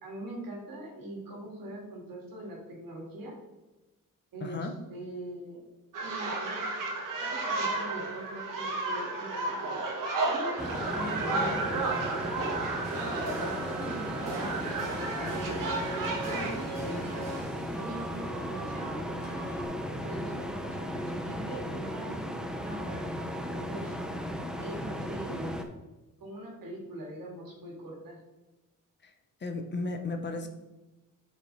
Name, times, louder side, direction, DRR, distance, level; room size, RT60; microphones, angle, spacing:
voice 1, 0.0-3.3 4.3-5.6 6.0-6.7 7.2-9.9 10.2-12.5 13.3-19.0 19.9-22.2 22.5-23.0 23.5-24.0 24.6-25.6 26.2-28.2, right 1 dB, 85° right, -2 dB, 2.6 m, -42 dB
voice 2, 4.4-4.7 29.0-29.1 29.4-30.5, left 3 dB, 35° left, 6 dB, 0.7 m, -34 dB
sound 1, 5.9-16.5, right 3 dB, 70° right, 1.5 m, -33 dB
sound 2, 10.6-25.6, equal, ahead, 0.5 m, -36 dB
sound 3, 12.8-19.7, right 2 dB, 50° right, 1.8 m, -41 dB
7.1 x 5.3 x 4.1 m, 1.1 s
wide cardioid pair, 170°, 33 cm